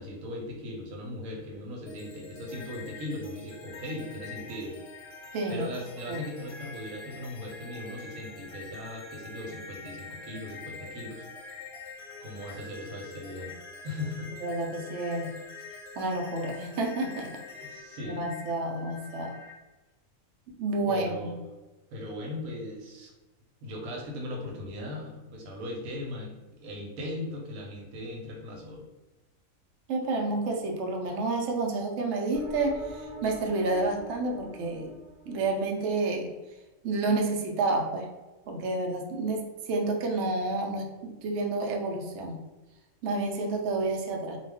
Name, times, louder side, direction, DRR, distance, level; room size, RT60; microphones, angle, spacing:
voice 1, 0.0-4.8 5.5-11.3 12.2-13.5 13.8-14.3 17.7-18.3 20.9-21.3 21.9-23.1 23.6-28.8, left 1 dB, 90° right, 0 dB, 1.1 m, -38 dB
sound 1, 1.9-19.5, left 4 dB, 60° left, 0.8 m, -45 dB
voice 2, 5.3-5.7 6.1-6.2 14.4-15.3 16.0-17.3 18.0-19.3 20.6-21.4 29.9-35.0 35.3-36.3 36.8-38.1 38.5-42.4 43.0-44.4, right 2 dB, 65° right, 1 dB, 0.8 m, -29 dB
sound 2, 32.3-35.9, equal, 25° left, 0.9 m, -44 dB
2.3 x 2.3 x 3.4 m, 1.1 s
omnidirectional pair, 1.5 m